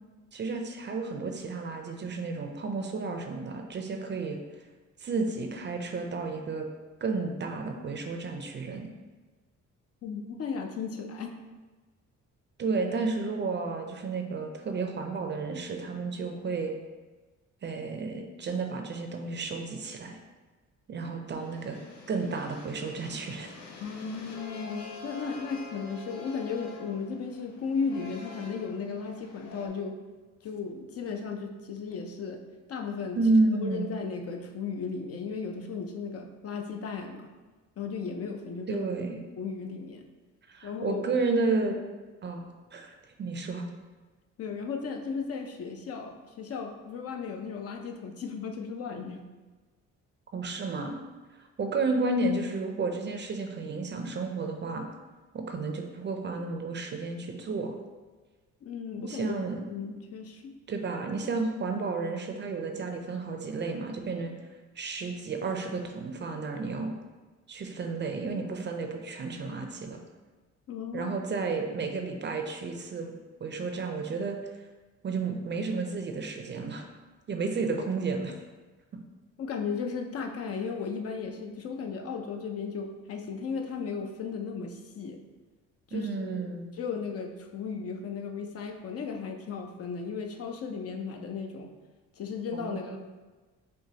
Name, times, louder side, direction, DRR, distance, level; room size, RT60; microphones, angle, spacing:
voice 1, 0.3-4.4 5.0-6.7 7.0-8.9 12.6-16.7 17.6-20.2 20.9-21.8 22.1-23.5 33.2-33.8 38.7-39.2 40.5-41.8 42.2-42.4 42.7-42.9 43.2-43.6 50.3-50.9 51.4-54.9 55.3-57.7 59.0-59.6 60.7-64.3 64.8-66.9 67.5-70.0 70.9-73.1 73.4-74.4 75.0-76.9 77.3-78.3 85.9-86.7 92.5-93.0, right 3 dB, 35° right, 4 dB, 0.5 m, -31 dB
voice 2, 10.0-11.3 23.8-30.0 30.4-32.4 32.7-33.2 33.5-37.3 37.8-38.9 39.4-40.1 40.6-41.0 44.4-49.3 58.6-59.3 59.7-60.4 70.7-71.1 71.7-71.8 79.4-85.2 85.9-86.4 86.7-91.7 92.1-93.0, left 5 dB, 50° left, 4 dB, 0.5 m, -35 dB
sound 1, 21.4-29.7, left 4 dB, 85° left, 0.8 m, -46 dB
6.1 x 2.2 x 2.8 m, 1.3 s
cardioid pair, 90°, 30 cm